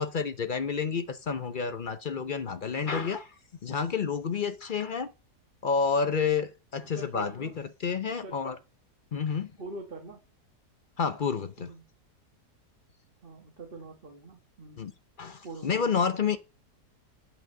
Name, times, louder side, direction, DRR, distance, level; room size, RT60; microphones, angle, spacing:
voice 1, 0.0-3.3 3.6-5.1 5.6-8.6 9.1-9.5 11.0-11.7 14.8-14.9 15.2-16.4, left 6 dB, 55° left, 0.5 m, -29 dB
voice 2, 6.8-7.5 8.1-8.4 9.6-10.2 11.6-11.8 13.2-14.8 15.4-16.1, right 2 dB, 35° right, 1.5 m, -44 dB
8.3 x 5.5 x 7.5 m
omnidirectional pair, 1.7 m